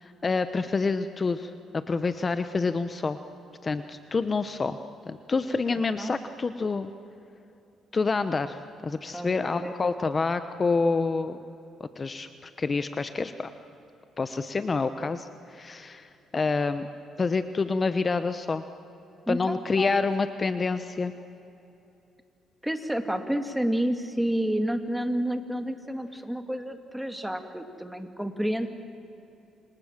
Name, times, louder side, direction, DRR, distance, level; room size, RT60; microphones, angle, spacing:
voice 1, 0.0-3.2 3.6-4.8 5.1-6.9 7.9-11.4 11.8-13.5 14.2-16.9 17.2-18.6 19.3-21.1, left 4 dB, 30° left, 10 dB, 1.0 m, -28 dB
voice 2, 9.1-9.7 19.3-19.9 22.6-28.8, right 1 dB, 5° right, 7 dB, 2.3 m, -30 dB
29.5 x 27.0 x 7.5 m, 2.9 s
cardioid pair, 105°, 0 cm